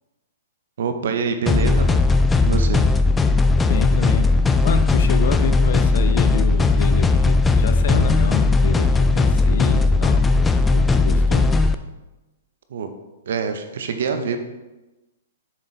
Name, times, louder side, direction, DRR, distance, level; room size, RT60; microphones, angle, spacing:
voice 1, 0.8-2.0 2.4-2.9 12.7-12.9 13.3-14.4, right 5 dB, 70° right, 7 dB, 0.7 m, -25 dB
sound 1, 1.5-11.7, left 3 dB, 10° left, 0.3 m, -17 dB
voice 2, 3.6-4.3 4.6-10.3 10.7-11.5, left 7 dB, 65° left, 9 dB, 0.6 m, -28 dB
7.3 x 3.9 x 3.2 m, 1.1 s
hypercardioid pair, 135°, 0 cm